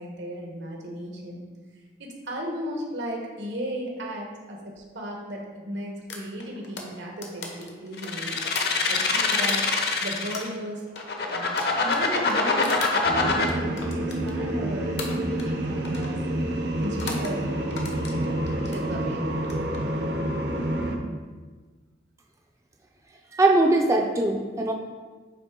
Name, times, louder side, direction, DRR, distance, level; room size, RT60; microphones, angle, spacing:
voice 1, 0.0-1.4 2.0-8.3 8.9-9.7 10.0-10.9 11.2-16.2 16.8-19.4 20.4-20.6, equal, 85° right, 0 dB, 1.3 m, -35 dB
sound 1, 6.1-10.0 10.3-14.6 15.0-15.6 15.8-16.2 16.8-17.3 17.7-18.8 19.4-19.8, left 3 dB, 80° left, 1.0 m, -38 dB
sound 2, 8.0-10.5 11.0-13.5, left 4 dB, 60° left, 0.7 m, -24 dB
sound 3, 13.0-21.0, right 1 dB, 65° right, 0.7 m, -28 dB
voice 2, 23.3-24.7, right 2 dB, 15° right, 1 dB, 0.4 m, -21 dB
9.0 x 3.3 x 3.7 m, 1.4 s
head